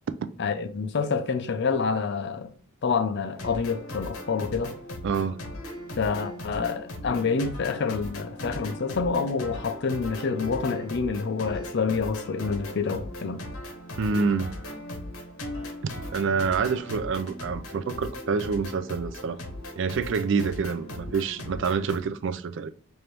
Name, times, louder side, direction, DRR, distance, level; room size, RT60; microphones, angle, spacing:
voice 1, 0.4-2.5 2.8-4.7 6.0-13.4, left 5 dB, 50° left, 0.4 m, -27 dB
sound 1, 3.3-22.0, left 1 dB, 75° left, 0.9 m, -38 dB
voice 2, 5.0-5.4 14.0-14.5 15.8-19.4 19.8-22.7, right 5 dB, 55° right, 0.3 m, -27 dB
3.3 x 2.6 x 4.4 m
head